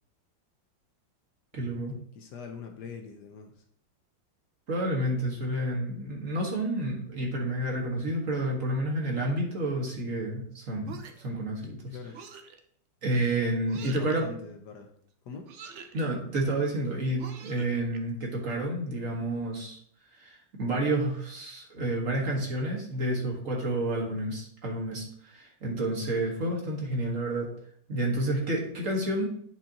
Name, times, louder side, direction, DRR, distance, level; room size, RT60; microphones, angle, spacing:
voice 1, 1.5-1.9 4.7-12.0 13.0-14.3 15.9-19.8 20.1-27.5 27.9-29.3, right 1 dB, 40° right, -1 dB, 1.7 m, -30 dB
voice 2, 2.1-3.6 11.9-12.2 13.8-14.9 15.2-15.5, left 6 dB, 65° left, 4 dB, 1.3 m, -42 dB
sound 1, 10.8-11.4 12.1-12.6 13.7-14.2 15.4-16.0 17.2-18.0, right 5 dB, 90° right, 0.6 m, -45 dB
9.7 x 5.4 x 2.9 m, 0.64 s
omnidirectional pair, 2.2 m